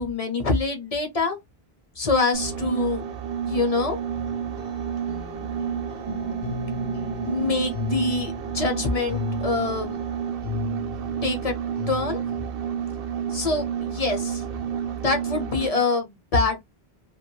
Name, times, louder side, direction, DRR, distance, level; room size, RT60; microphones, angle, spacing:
voice 1, 0.0-1.4 2.0-3.0 3.4-4.0 7.3-10.0 11.2-11.6 11.9-12.4 13.3-14.4 15.0-16.6, left 3 dB, 40° left, 0.7 m, -25 dB
sound 1, 2.3-15.9, right 8 dB, 70° right, 0.7 m, -30 dB
sound 2, 4.2-12.4, left 7 dB, 85° left, 0.8 m, -36 dB
2.5 x 2.2 x 3.0 m
omnidirectional pair, 1.1 m